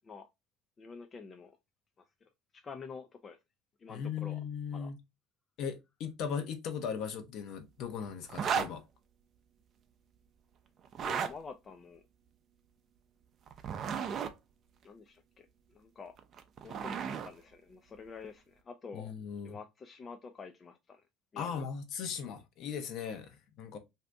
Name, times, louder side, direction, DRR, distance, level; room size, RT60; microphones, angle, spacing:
voice 1, 0.8-1.6 2.0-2.1 2.5-3.4 3.8-4.4 4.7-4.9 11.0-12.0 14.8-16.2 16.6-19.1 19.4-21.0 21.3-21.7, left 5 dB, 30° left, 0.4 m, -48 dB
voice 2, 3.9-5.0 5.6-8.8 18.9-19.6 21.4-23.8, left 7 dB, 60° left, 0.8 m, -38 dB
sound 1, 8.3-8.7 10.9-11.3 13.5-14.3 16.2-17.3, right 7 dB, 45° right, 0.5 m, -34 dB
2.7 x 2.5 x 3.3 m
supercardioid pair, 95°, 0 cm